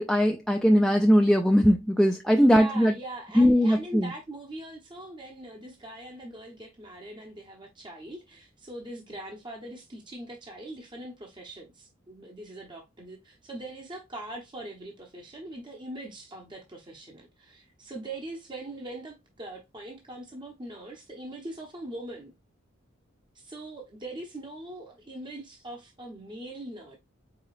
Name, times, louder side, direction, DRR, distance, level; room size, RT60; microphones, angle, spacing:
voice 1, 0.0-2.9 3.4-4.1, equal, ahead, 0.4 m, -20 dB
voice 2, 2.4-22.3 23.3-27.0, right 1 dB, 25° right, 0.8 m, -41 dB
4.9 x 3.7 x 2.4 m
head